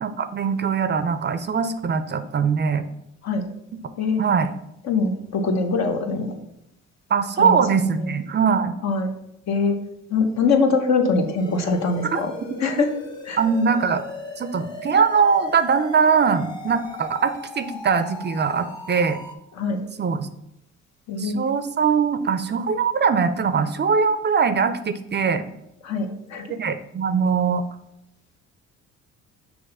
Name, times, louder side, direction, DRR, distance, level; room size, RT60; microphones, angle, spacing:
voice 1, 0.0-2.9 4.2-4.5 7.1-8.7 12.1-12.2 13.4-14.0 14.4-19.2 20.0-20.3 21.2-25.4 26.6-27.6, right 6 dB, 35° right, 11 dB, 0.4 m, -21 dB
voice 2, 4.8-6.3 7.4-8.2 8.8-9.1 9.5-9.8 10.1-12.3 12.6-12.9 13.2-13.4 19.6-19.8 21.1-21.5 25.8-26.5, left 4 dB, 60° left, 5 dB, 1.0 m, -23 dB
sound 1, 11.4-19.4, left 2 dB, 15° left, 1.0 m, -38 dB
6.2 x 2.9 x 5.4 m, 0.80 s
cardioid pair, 90°, 30 cm